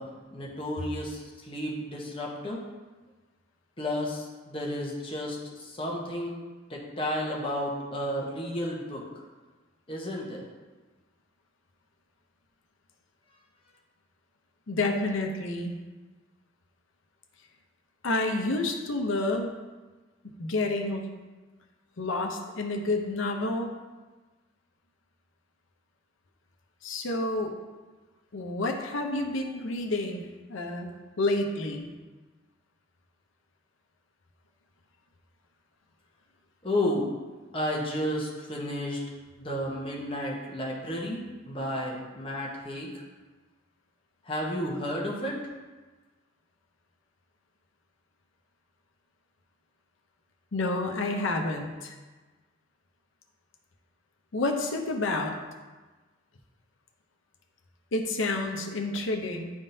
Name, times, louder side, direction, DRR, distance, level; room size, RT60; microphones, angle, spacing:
voice 1, 0.0-2.6 3.8-6.3 6.7-9.0 9.9-10.4 36.6-37.1 37.5-39.0 39.3-43.0 44.3-45.4, left 1 dB, 25° left, -3 dB, 1.0 m, -32 dB
voice 2, 14.7-15.8 18.0-19.5 20.2-21.0 22.0-23.7 26.8-27.6 28.3-30.2 30.5-31.9 50.5-52.0 54.3-55.3 57.9-59.5, left 2 dB, 75° left, 3 dB, 0.7 m, -29 dB
10.0 x 3.6 x 2.7 m, 1.3 s
head